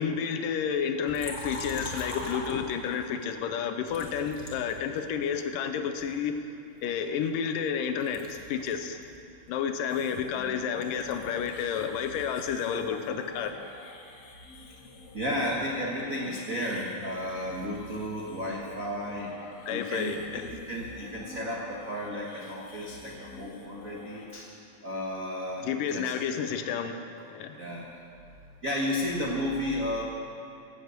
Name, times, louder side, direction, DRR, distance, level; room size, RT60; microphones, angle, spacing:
voice 1, 0.0-6.4 6.8-9.0 9.5-13.5 19.7-20.6 25.6-27.6, left 7 dB, 80° left, 7 dB, 2.3 m, -31 dB
Liquid, 1.1-3.0 3.9-5.4 6.0-7.7 8.0-11.7 12.0-13.6, left 1 dB, 25° left, 1.8 m, -43 dB
sound 1, 9.9-24.3, left 3 dB, 60° left, 2.3 m, -48 dB
voice 2, 15.1-19.3 19.7-20.4 20.7-24.5 24.8-26.1 27.5-27.9 28.6-30.0, left 1 dB, 65° right, -3 dB, 0.8 m, -33 dB
16.5 x 7.7 x 8.1 m, 2.5 s
omnidirectional pair, 4.0 m